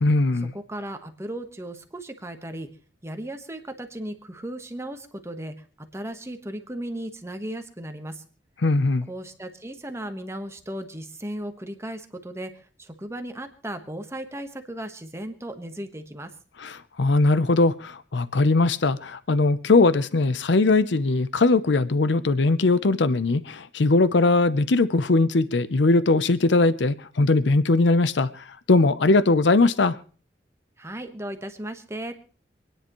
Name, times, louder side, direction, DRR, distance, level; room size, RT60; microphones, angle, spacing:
voice 1, 0.0-0.5 8.6-9.1 16.6-30.0, left 3 dB, 75° left, 15 dB, 0.6 m, -20 dB
voice 2, 0.5-2.7 3.0-8.2 9.1-16.3 30.8-32.2, right 1 dB, 15° right, 7 dB, 1.2 m, -36 dB
27.0 x 10.0 x 3.1 m, 0.41 s
head